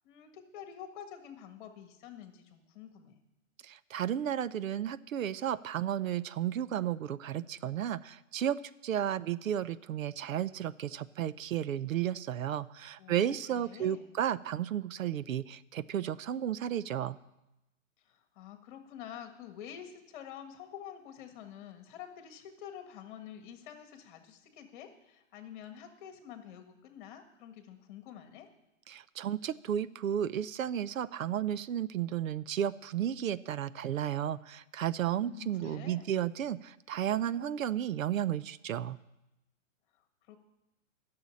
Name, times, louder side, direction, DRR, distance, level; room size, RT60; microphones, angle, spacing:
voice 1, 0.0-3.2 13.0-14.2 18.0-28.5 35.2-36.2 40.3-40.4, left 9 dB, 40° left, 7 dB, 1.6 m, -48 dB
voice 2, 3.6-17.2 28.9-39.0, right 10 dB, 85° right, 17 dB, 0.7 m, -33 dB
11.5 x 6.8 x 9.6 m, 0.93 s
hypercardioid pair, 155°, 39 cm